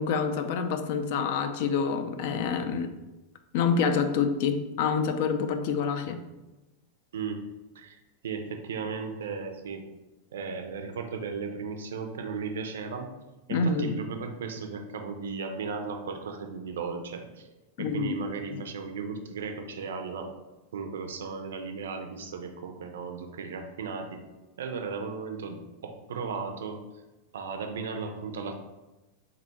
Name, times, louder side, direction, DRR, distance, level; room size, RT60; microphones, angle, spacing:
voice 1, 0.0-2.9 3.5-6.2 13.5-13.9 17.8-18.1 18.5-18.6, left 5 dB, 50° left, 7 dB, 0.3 m, -27 dB
voice 2, 7.1-9.8 10.3-13.1 13.5-17.5 17.8-20.3 20.7-24.2 24.6-26.9 27.3-28.5, right 5 dB, 60° right, 6 dB, 0.4 m, -36 dB
3.7 x 2.3 x 4.1 m, 1.1 s
figure-of-eight pair, 90°, 0 cm